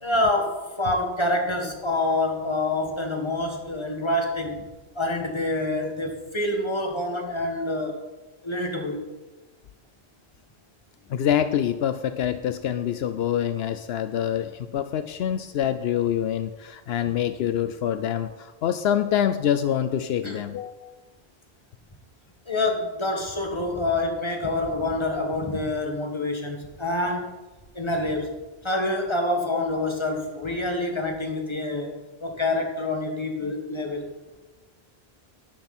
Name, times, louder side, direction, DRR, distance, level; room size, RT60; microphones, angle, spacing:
voice 1, 0.0-4.6 5.0-8.0 8.4-9.0 20.2-20.4 22.5-27.3 27.7-28.3 28.6-34.1, left 2 dB, 25° left, 2 dB, 1.9 m, -27 dB
voice 2, 11.1-20.9, left 10 dB, 80° left, 11 dB, 0.8 m, -26 dB
12.0 x 11.5 x 4.3 m, 1.2 s
omnidirectional pair, 1.1 m